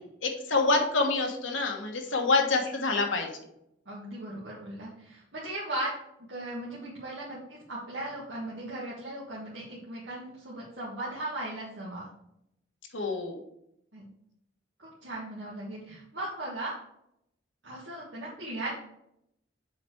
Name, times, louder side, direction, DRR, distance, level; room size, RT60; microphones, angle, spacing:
voice 1, 0.2-3.3 12.9-13.4, left 3 dB, 85° left, 2 dB, 1.3 m, -26 dB
voice 2, 3.8-5.9 6.3-12.1 13.9-14.1 14.8-16.7 17.6-18.8, right 1 dB, 65° right, -6 dB, 1.6 m, -37 dB
7.1 x 4.2 x 4.5 m, 0.78 s
head